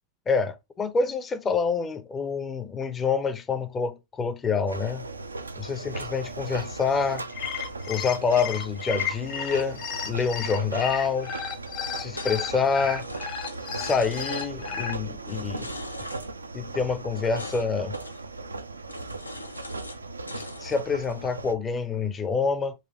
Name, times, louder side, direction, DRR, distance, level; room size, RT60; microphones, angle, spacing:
voice 1, 0.3-5.1 5.6-7.3 7.9-11.3 12.0-13.1 13.8-15.7 16.5-18.0 20.3-22.7, left 5 dB, 20° left, 0.6 m, -27 dB
sound 1, 4.7-21.5, right 3 dB, 80° right, 0.3 m, -37 dB
sound 2, 7.2-14.9, left 7 dB, 45° left, 1.0 m, -33 dB
sound 3, 10.9-12.7 13.0-14.5 15.2-16.3 17.1-17.7 17.9-18.2 18.9-20.0 20.3-21.1, left 2 dB, 85° left, 0.5 m, -42 dB
4.2 x 2.8 x 3.9 m
figure-of-eight pair, 90°, 0 cm